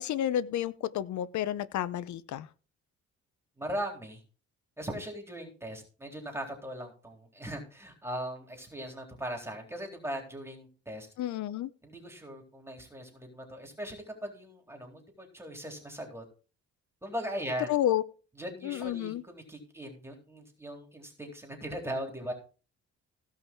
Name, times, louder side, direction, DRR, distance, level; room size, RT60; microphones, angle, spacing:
voice 1, 0.0-2.5 11.2-11.7 17.7-18.0 18.6-19.2, left 11 dB, 70° left, 0.8 m, -30 dB
voice 2, 3.6-4.2 4.8-11.1 11.8-16.2 17.0-17.7 18.4-22.3, equal, 10° right, 3.7 m, -39 dB
16.5 x 5.7 x 4.6 m
cardioid pair, 90°, 30 cm